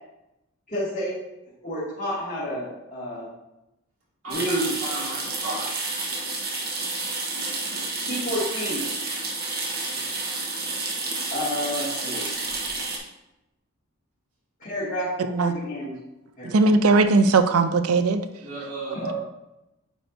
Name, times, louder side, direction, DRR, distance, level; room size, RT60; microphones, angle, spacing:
voice 1, 0.7-1.1 1.6-3.3 4.3-4.7 8.0-8.8 11.3-12.3 14.6-15.9 16.4-16.7 18.9-19.1, equal, 35° left, -10 dB, 2.2 m, -30 dB
voice 2, 4.2-5.7 9.9-10.1 18.4-19.1, right 2 dB, 65° right, -6 dB, 2.4 m, -35 dB
sound 1, 4.3-13.0, right 3 dB, 45° right, 1.2 m, -30 dB
voice 3, 16.4-18.2, right 3 dB, 90° right, 10 dB, 0.5 m, -19 dB
9.1 x 4.5 x 2.7 m, 0.94 s
head